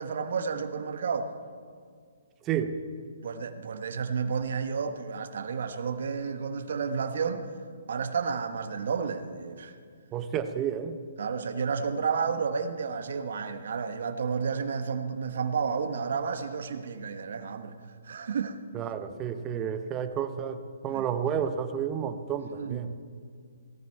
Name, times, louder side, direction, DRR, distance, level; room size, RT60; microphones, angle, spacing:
voice 1, 0.0-1.3 3.2-7.5 7.9-9.8 11.2-17.7 18.0-18.6 20.9-21.1 22.5-23.0, right 5 dB, 65° right, 8 dB, 1.1 m, -31 dB
voice 2, 2.4-2.8 10.1-11.0 18.7-22.9, right 8 dB, 20° right, 9 dB, 0.8 m, -31 dB
18.5 x 13.5 x 4.6 m, 2.1 s
hypercardioid pair, 155°, 0 cm